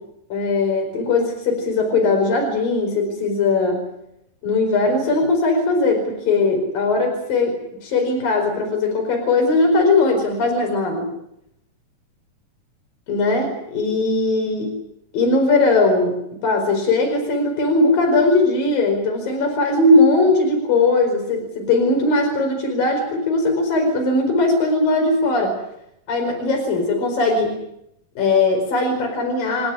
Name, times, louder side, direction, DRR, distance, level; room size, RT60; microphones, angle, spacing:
voice 1, 0.3-3.8 4.4-7.6 7.8-11.1 13.1-14.7 15.1-25.6 26.1-27.6 28.2-29.7, left 2 dB, 80° left, 3 dB, 6.5 m, -19 dB
28.5 x 15.0 x 9.9 m, 0.78 s
omnidirectional pair, 3.9 m